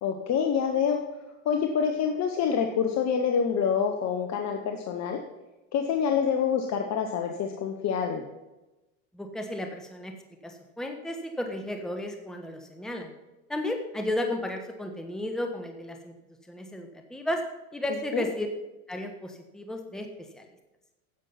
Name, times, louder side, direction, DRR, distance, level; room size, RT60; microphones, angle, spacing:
voice 1, 0.0-1.1 1.4-5.2 5.7-8.3 18.1-18.3, left 7 dB, 40° left, 4 dB, 1.1 m, -26 dB
voice 2, 9.1-10.1 10.4-13.1 13.5-16.1 16.5-17.4 17.7-18.5 18.9-20.5, left 1 dB, ahead, 4 dB, 1.2 m, -33 dB
10.0 x 7.2 x 5.8 m, 1.0 s
hypercardioid pair, 90°, 43 cm